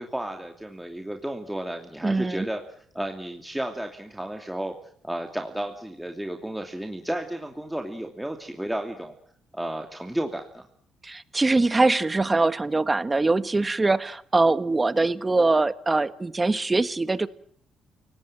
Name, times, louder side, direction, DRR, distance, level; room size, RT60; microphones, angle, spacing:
voice 1, 0.0-2.6 2.9-4.7 5.0-9.2 9.5-10.7, right 1 dB, 5° right, 4 dB, 2.7 m, -32 dB
voice 2, 2.0-2.5 11.0-17.3, right 3 dB, 20° right, 14 dB, 1.5 m, -23 dB
29.5 x 18.5 x 7.6 m, 0.63 s
cardioid pair, 90°, 0 cm